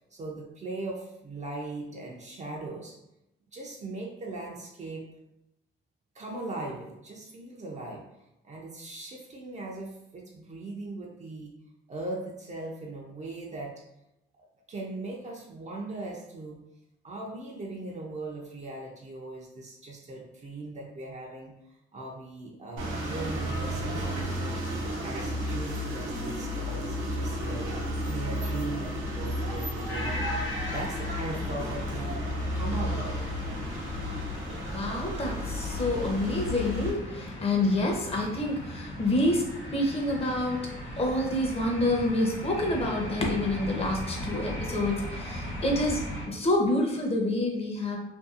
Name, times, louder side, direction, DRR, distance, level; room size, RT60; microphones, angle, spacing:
voice 1, 0.1-3.0 3.5-5.1 6.1-8.1 8.4-11.6 11.9-13.8 14.7-16.6 17.0-21.5 21.9-24.6 25.0-27.7 28.1-30.3 30.7-33.2, right 2 dB, 35° right, -1 dB, 0.4 m, -39 dB
sound 1, 22.8-36.9, equal, 90° right, 0.8 m, -32 dB
sound 2, 29.9-46.3, left 1 dB, 80° left, 1.0 m, -38 dB
voice 2, 34.7-39.4 39.7-40.7 41.0-48.0, left 1 dB, 30° left, 0 dB, 0.7 m, -28 dB
2.6 x 2.3 x 2.4 m, 0.90 s
cardioid pair, 90°, 20 cm